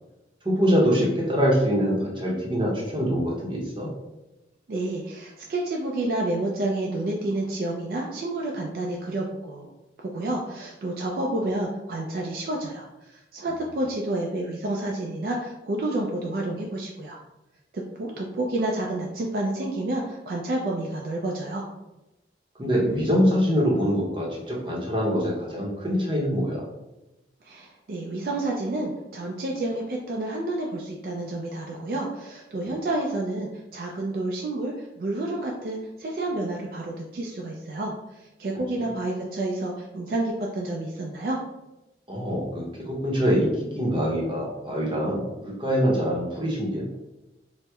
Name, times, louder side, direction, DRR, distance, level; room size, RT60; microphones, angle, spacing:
voice 1, 0.4-3.9 22.6-26.6 32.6-32.8 38.8-38.9 42.1-47.0, equal, 30° right, -4 dB, 0.7 m, -24 dB
voice 2, 4.7-9.7 10.0-17.2 17.7-21.6 27.4-41.4, right 2 dB, 55° right, -1 dB, 0.3 m, -29 dB
4.2 x 2.0 x 2.3 m, 0.99 s
head